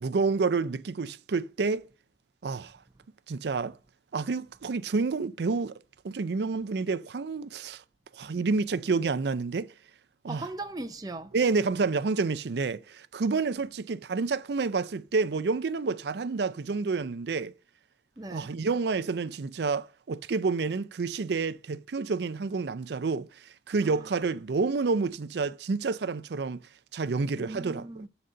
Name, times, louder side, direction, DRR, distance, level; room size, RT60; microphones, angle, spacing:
voice 1, 0.0-1.9 2.4-2.7 3.3-3.8 4.1-5.7 6.0-7.8 8.1-9.7 10.2-10.5 11.3-17.5 18.3-26.6 26.9-27.8, right 4 dB, 70° right, 0.5 m, -29 dB
voice 2, 10.3-11.3 18.2-18.5 23.8-24.1 27.4-28.1, right 2 dB, 20° right, 0.6 m, -39 dB
7.6 x 4.1 x 6.2 m
head